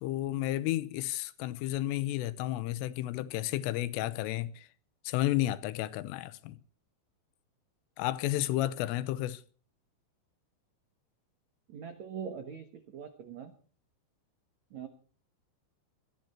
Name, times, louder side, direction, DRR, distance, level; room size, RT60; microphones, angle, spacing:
voice 1, 0.0-4.7 5.1-6.6 8.0-9.4, left 15 dB, 90° left, 3.5 m, -32 dB
voice 2, 11.7-13.5 14.7-14.9, right 7 dB, 90° right, 1.5 m, -42 dB
21.5 x 13.5 x 4.3 m
omnidirectional pair, 5.6 m